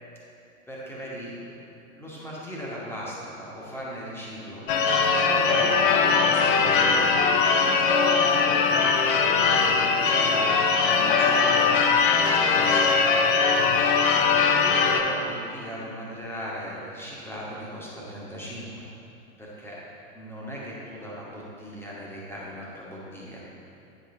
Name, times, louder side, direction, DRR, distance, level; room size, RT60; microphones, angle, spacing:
voice 1, 0.7-1.6 1.9-4.6 5.2-7.1 7.8-8.5 9.1-13.0 13.8-14.1 14.4-18.9 19.4-19.8 20.1-23.4, equal, 5° left, -6 dB, 1.2 m, -37 dB
Church bell / Car / Alarm, 4.7-15.0, left 5 dB, 40° left, 0.5 m, -21 dB
9.2 x 5.4 x 2.6 m, 2.7 s
figure-of-eight pair, 95°, 42 cm